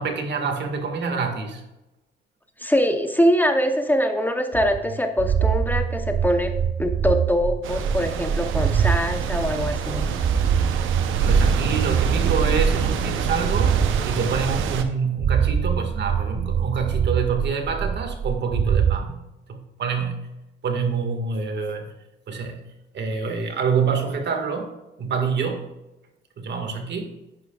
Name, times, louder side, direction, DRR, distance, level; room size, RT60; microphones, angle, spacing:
voice 1, 0.0-1.6 11.2-13.8 14.1-19.2 19.5-20.2 20.6-21.9 22.3-22.6 22.9-24.7 25.0-25.6 26.4-27.1, right 5 dB, 60° right, 4 dB, 1.9 m, -26 dB
voice 2, 2.6-6.5 6.8-10.1, equal, 10° left, 5 dB, 0.9 m, -23 dB
sound 1, 4.5-9.0 9.4-14.0 14.4-14.9 15.2-19.0, right 8 dB, 40° right, 0.5 m, -24 dB
sound 2, 7.6-14.8, right 6 dB, 85° right, 0.9 m, -25 dB
11.0 x 9.6 x 2.4 m, 0.99 s
cardioid pair, 90°, 20 cm